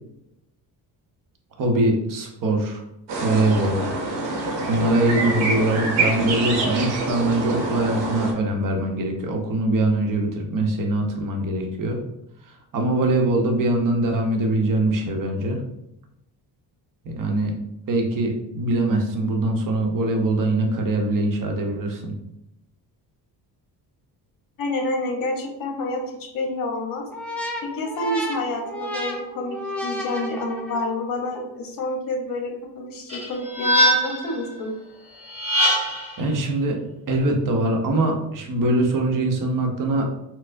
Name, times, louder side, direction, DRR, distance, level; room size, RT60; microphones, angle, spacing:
voice 1, 1.6-2.8 3.2-3.8 4.7-12.0 12.7-15.6 17.0-17.5 17.9-22.1 36.2-36.8 37.1-40.0, right 2 dB, 45° right, 2 dB, 0.8 m, -22 dB
sound 1, 3.1-8.3, right 2 dB, 75° right, 0.9 m, -26 dB
voice 2, 24.6-26.0 26.3-27.0 27.6-34.7, left 2 dB, 50° left, 2 dB, 0.9 m, -28 dB
sound 2, 27.1-31.0, equal, 5° left, 0.4 m, -32 dB
sound 3, 33.1-34.3 35.3-36.1, equal, 15° right, 1.1 m, -21 dB
4.2 x 2.0 x 2.5 m, 0.85 s
cardioid pair, 100°, 43 cm